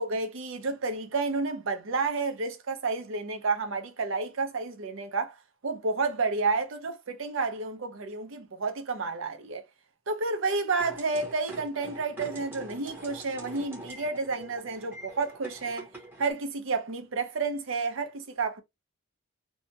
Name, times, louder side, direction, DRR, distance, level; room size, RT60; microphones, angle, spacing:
voice 1, 0.0-5.4 5.6-9.6 10.1-15.9 16.2-18.6, right 4 dB, 60° right, 0.6 m, -30 dB
sound 1, 10.8-16.3, right 1 dB, 10° right, 0.8 m, -44 dB
2.7 x 2.2 x 2.7 m
head